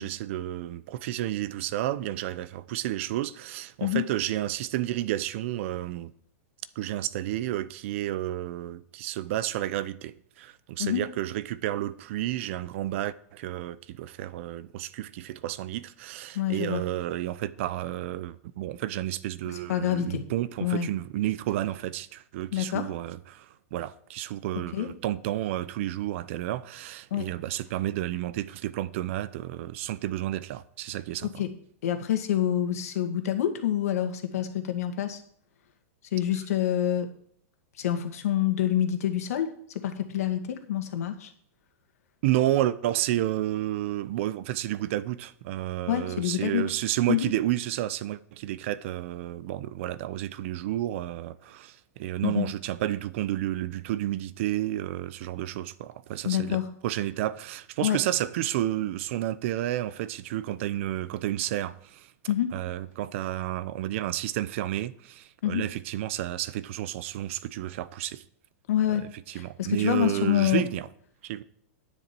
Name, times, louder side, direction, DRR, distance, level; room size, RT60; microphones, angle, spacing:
voice 1, 0.0-6.1 6.8-31.3 42.2-62.1 62.5-68.2 69.3-70.9 71.2-71.4, right 14 dB, 55° right, 0.6 m, -31 dB
voice 2, 16.3-16.8 19.5-20.2 20.6-20.9 22.5-22.9 24.7-24.9 27.1-27.3 31.2-31.5 31.8-35.2 36.1-37.1 37.8-41.3 45.9-46.7 47.1-47.3 52.2-52.5 56.2-56.7 57.8-58.0 62.3-62.5 65.4-65.6 68.7-69.0 69.3-70.6, left 11 dB, 75° left, 2.0 m, -27 dB
10.5 x 9.8 x 4.5 m
supercardioid pair, 145°, 8 cm